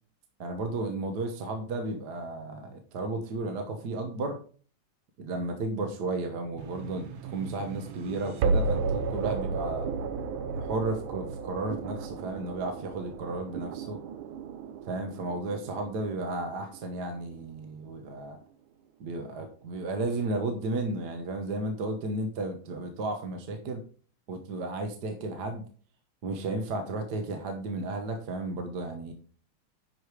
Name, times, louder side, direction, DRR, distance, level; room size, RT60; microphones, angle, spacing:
voice 1, 0.4-4.4 5.2-9.9 10.5-14.0 14.9-18.4 19.0-23.8 24.3-25.6 26.2-29.1, right 2 dB, 60° right, 5 dB, 1.6 m, -33 dB
sound 1, 6.6-17.6, right 4 dB, 85° right, 1.7 m, -34 dB
11.0 x 5.0 x 4.8 m, 0.41 s
omnidirectional pair, 2.2 m